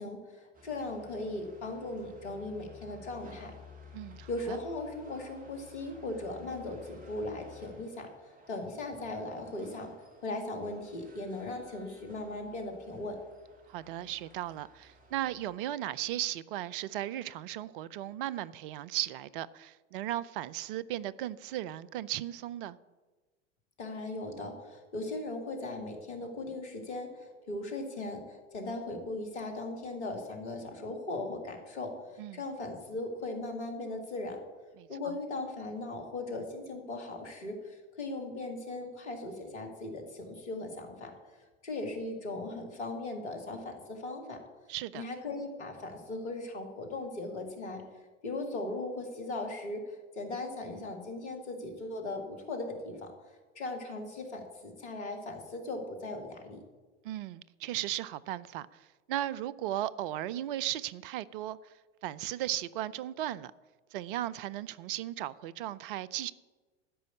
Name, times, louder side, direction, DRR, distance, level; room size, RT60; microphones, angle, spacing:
voice 1, 0.0-3.5 4.3-9.9 10.2-13.2 23.8-34.4 34.9-41.1 41.6-44.4 44.9-47.8 48.2-53.1 53.6-56.6, left 2 dB, 70° left, 2.4 m, -38 dB
sound 1, 0.5-15.6, left 3 dB, 25° right, 2.3 m, -55 dB
voice 2, 3.9-4.6 13.7-22.8 32.2-32.4 34.8-35.1 44.7-45.0 57.0-61.6 62.0-63.5 63.9-66.3, right 13 dB, 50° right, 0.5 m, -36 dB
13.5 x 5.3 x 8.3 m
figure-of-eight pair, 80°, 36 cm